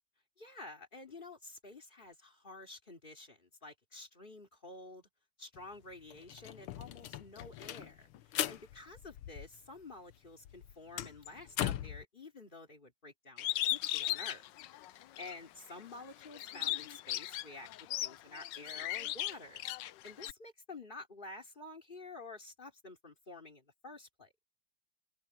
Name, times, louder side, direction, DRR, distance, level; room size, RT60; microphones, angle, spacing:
voice 1, 0.4-5.1 5.4-14.4 14.9-17.7 18.0-24.3, left 2 dB, 25° left, 3.4 m, -50 dB
sound 1, 5.5-5.6 5.9-9.8 10.1-12.0, left 12 dB, 90° left, 1.7 m, -40 dB
Bird, 13.4-15.4 15.8-20.3, left 13 dB, 70° left, 1.2 m, -37 dB
open air
omnidirectional pair, 2.3 m